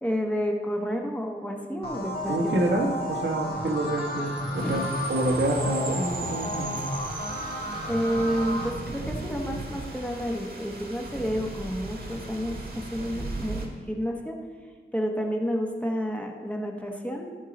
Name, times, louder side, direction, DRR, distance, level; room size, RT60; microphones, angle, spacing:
voice 1, 0.0-2.6 4.6-4.9 7.9-14.4 14.9-17.3, equal, 5° left, 1 dB, 1.0 m, -30 dB
sound 1, 1.8-8.7, equal, 55° left, 1.8 m, -33 dB
voice 2, 2.3-6.8, right 1 dB, 70° right, 0 dB, 1.4 m, -27 dB
sound 2, 3.7-8.3, right 6 dB, 85° right, 0.7 m, -41 dB
sound 3, 4.6-13.7, right 2 dB, 55° right, 1.6 m, -39 dB
13.5 x 4.6 x 5.2 m, 1.6 s
wide cardioid pair, 115°, 19 cm